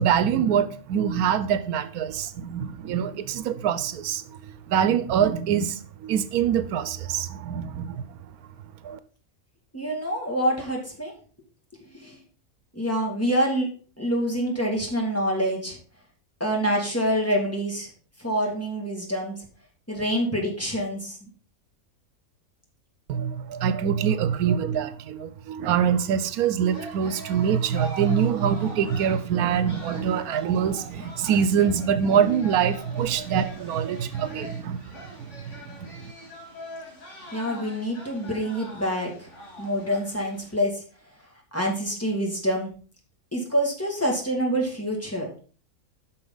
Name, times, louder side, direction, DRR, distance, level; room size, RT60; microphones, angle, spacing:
voice 1, 0.0-8.2 8.8-9.0 23.1-34.8 35.4-35.9, right 8 dB, 85° right, 1.1 m, -24 dB
voice 2, 9.7-11.1 11.9-12.2 12.8-13.7 14.0-15.8 16.4-17.9 18.2-19.3 19.9-21.3 37.3-39.3 39.6-40.8 41.5-42.7 43.3-45.3, equal, 10° left, 2.0 m, -26 dB
sound 1, 26.7-40.6, equal, 55° left, 2.5 m, -43 dB
9.9 x 6.1 x 3.9 m
omnidirectional pair, 1.5 m